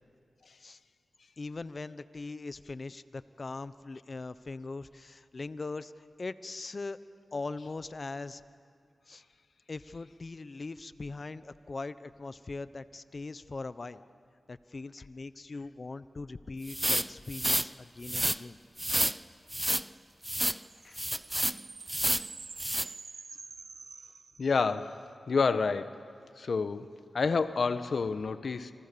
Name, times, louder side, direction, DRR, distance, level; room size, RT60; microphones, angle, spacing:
voice 1, 1.4-7.0 7.3-8.4 9.1-9.2 9.7-14.0 14.5-18.6, left 3 dB, 50° left, 14 dB, 1.0 m, -40 dB
sound 1, 16.7-17.7 18.0-18.4 18.8-19.2 19.5-19.8 20.2-20.6 21.0-21.6 21.9-22.3 22.6-22.9, right 1 dB, 10° right, 0.8 m, -29 dB
sound 2, 20.4-24.9, right 4 dB, 65° right, 0.8 m, -48 dB
voice 2, 24.4-26.0 26.4-28.7, left 4 dB, 70° left, 11 dB, 1.2 m, -29 dB
28.5 x 26.5 x 7.0 m, 2.3 s
cardioid pair, 45°, 0 cm